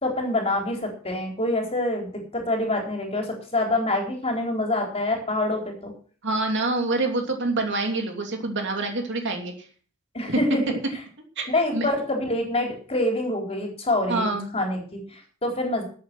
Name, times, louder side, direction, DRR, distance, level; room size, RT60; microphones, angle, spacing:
voice 1, 0.0-5.9 10.1-10.8 11.5-14.2 14.5-15.8, left 1 dB, 30° left, 1 dB, 4.0 m, -26 dB
voice 2, 6.2-9.5 10.3-10.4 11.4-11.9 14.1-14.5, right 2 dB, 55° right, 3 dB, 2.8 m, -26 dB
14.0 x 8.4 x 6.1 m, 0.43 s
head